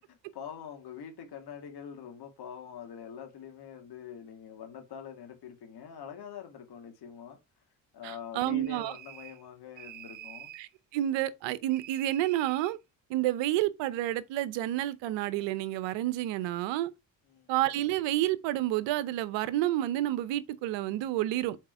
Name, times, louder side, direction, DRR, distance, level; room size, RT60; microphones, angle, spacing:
voice 1, 0.0-7.4 7.9-10.5 17.3-17.5, left 7 dB, 60° left, 2.0 m, -44 dB
voice 2, 8.0-8.9 10.6-12.8 13.1-16.9 17.5-21.6, right 14 dB, 80° right, 0.8 m, -30 dB
sound 1, 8.6-9.5 9.8-10.7 11.7-12.8, right 12 dB, 45° right, 0.6 m, -47 dB
4.7 x 4.3 x 5.7 m
supercardioid pair, 55°, 44 cm